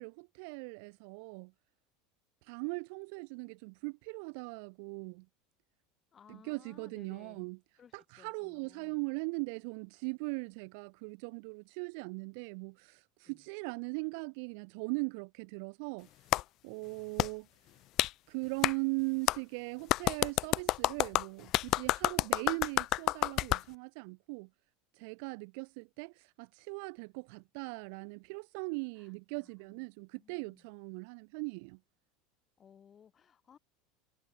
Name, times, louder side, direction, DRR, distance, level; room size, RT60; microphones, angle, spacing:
voice 1, 0.0-1.5 2.4-5.3 6.3-7.6 7.9-16.1 16.6-17.5 18.3-24.5 24.9-31.8, right 35 dB, 65° right, 2.4 m, -39 dB
voice 2, 6.1-7.5 7.8-9.0 13.3-13.5 29.0-29.9 30.1-30.7 32.6-33.6, left 8 dB, 35° left, 5.7 m, -60 dB
Clapping, 16.3-16.4 17.2-17.3 18.0-18.1 18.6-18.7 19.3-19.4 19.9-23.6, left 16 dB, 50° left, 0.7 m, -29 dB
hypercardioid pair, 80°, 0 cm